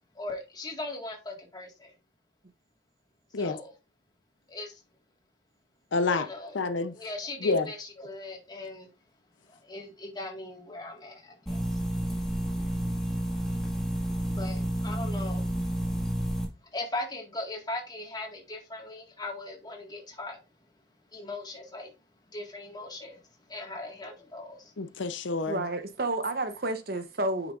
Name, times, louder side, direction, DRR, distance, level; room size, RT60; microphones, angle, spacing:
voice 1, 0.1-1.9 3.3-3.8 4.5-4.8 6.0-6.6 6.9-8.9 9.5-11.8 14.3-15.5 16.6-20.4 21.1-21.9 22.3-24.7, left 2 dB, 20° left, 1.7 m, -39 dB
voice 2, 5.9-6.3 6.5-6.9 7.4-7.7 24.8-25.6, left 3 dB, 70° left, 0.7 m, -28 dB
sound 1, 11.5-16.5, equal, ahead, 1.8 m, -30 dB
voice 3, 25.4-27.5, right 2 dB, 50° right, 0.9 m, -30 dB
8.9 x 6.0 x 2.5 m
head